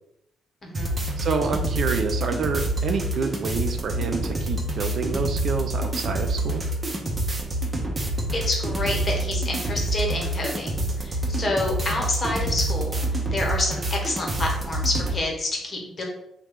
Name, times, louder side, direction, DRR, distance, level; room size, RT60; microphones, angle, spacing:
voice 1, 0.6-1.0 8.3-13.0 13.3-16.0, left 2 dB, 40° left, -1 dB, 1.1 m, -28 dB
sound 1, 0.7-15.2, right 1 dB, 35° right, 0.8 m, -27 dB
voice 2, 1.2-6.6, right 4 dB, 60° right, 6 dB, 0.4 m, -28 dB
3.0 x 2.3 x 3.5 m, 0.80 s
hypercardioid pair, 50°, 0 cm